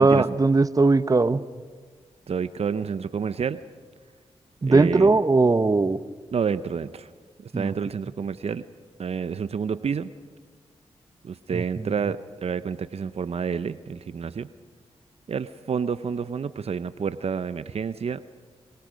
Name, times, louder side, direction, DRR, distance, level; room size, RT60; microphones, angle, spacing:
voice 1, 0.0-1.4 4.6-6.0 7.5-7.7 11.5-11.9, right 3 dB, 30° right, 14 dB, 0.8 m, -19 dB
voice 2, 2.3-3.6 4.6-5.2 6.3-7.1 7.4-8.7 9.0-10.1 11.2-14.5 15.3-18.2, right 6 dB, 60° right, 14 dB, 0.6 m, -29 dB
25.0 x 24.0 x 5.1 m, 1.5 s
cardioid pair, 50°, 12 cm